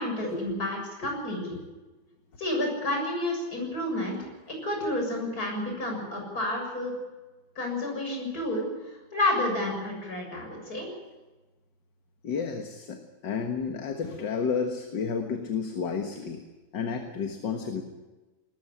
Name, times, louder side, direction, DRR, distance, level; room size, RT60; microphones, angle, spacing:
voice 1, 0.0-1.4 2.4-6.9 7.6-10.9, left 1 dB, 50° left, 1 dB, 7.7 m, -30 dB
voice 2, 12.2-16.4 16.7-17.8, left 5 dB, 65° left, 4 dB, 2.2 m, -31 dB
20.5 x 14.5 x 10.0 m, 1.2 s
omnidirectional pair, 2.1 m